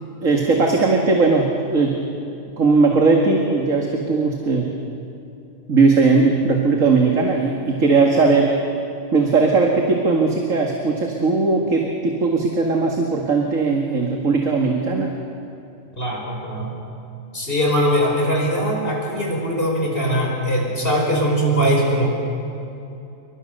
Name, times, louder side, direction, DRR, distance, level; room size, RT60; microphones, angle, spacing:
voice 1, 0.2-2.0 2.6-4.7 5.7-8.6 9.1-15.1, right 4 dB, 75° right, 1 dB, 2.4 m, -18 dB
voice 2, 16.0-16.8 17.3-22.1, equal, 45° left, -1 dB, 5.4 m, -21 dB
28.5 x 24.0 x 6.7 m, 2.8 s
omnidirectional pair, 1.4 m